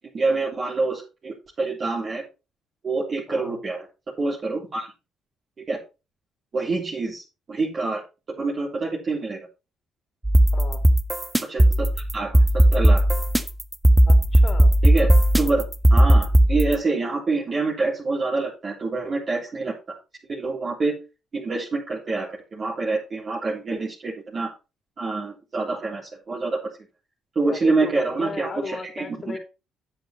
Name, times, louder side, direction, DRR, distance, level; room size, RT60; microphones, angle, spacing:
voice 1, 0.1-2.2 2.8-3.8 4.2-4.9 5.7-5.8 6.5-7.2 7.5-8.0 8.4-9.4 11.5-11.9 12.1-13.0 14.8-15.1 15.4-15.6 15.9-19.7 20.3-21.0 21.3-24.5 25.0-26.0 26.3-26.6 27.4-29.4, right 3 dB, 45° right, -5 dB, 3.5 m, -26 dB
sound 1, 10.2-16.8, right 1 dB, 10° right, 1.3 m, -17 dB
voice 2, 14.1-14.7 27.4-29.4, left 4 dB, 40° left, 7 dB, 3.1 m, -35 dB
10.5 x 7.8 x 4.3 m, 0.30 s
hypercardioid pair, 55°, 0 cm